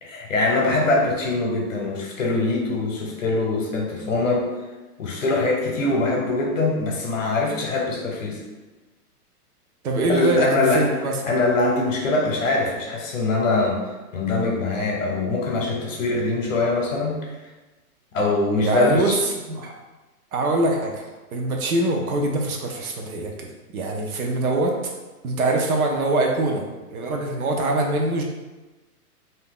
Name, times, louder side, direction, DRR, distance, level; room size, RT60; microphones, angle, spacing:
voice 1, 0.0-4.5 5.0-8.4 10.1-13.8 14.1-17.2 18.1-19.2, left 2 dB, 55° left, 0 dB, 0.8 m, -23 dB
voice 2, 9.8-11.1 18.6-19.2 19.5-19.7 20.3-23.5 23.7-24.8 25.2-28.2, right 2 dB, 65° right, 2 dB, 0.7 m, -23 dB
2.7 x 2.3 x 3.5 m, 1.2 s
hypercardioid pair, 170°, 47 cm